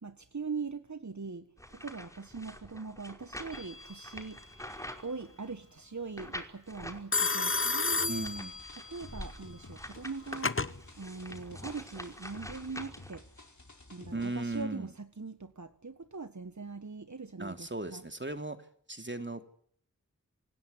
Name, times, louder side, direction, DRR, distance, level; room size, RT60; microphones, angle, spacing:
voice 1, 0.0-4.6 5.0-8.3 8.8-10.6 11.0-13.2 13.9-18.0, right 4 dB, 60° right, 1.5 m, -41 dB
sound 1, 1.6-5.6 6.2-7.0 7.4-13.4, left 1 dB, 10° left, 5.3 m, -46 dB
Telephone, 3.5-4.0 7.1-9.0 10.0-10.7, left 3 dB, 40° left, 1.1 m, -31 dB
sound 2, 8.0-14.6, left 2 dB, 60° left, 5.0 m, -53 dB
voice 2, 8.1-8.6 14.1-14.9 17.4-18.6 18.9-19.4, right 2 dB, 35° right, 3.0 m, -37 dB
27.0 x 16.5 x 9.8 m
wide cardioid pair, 40°, 32 cm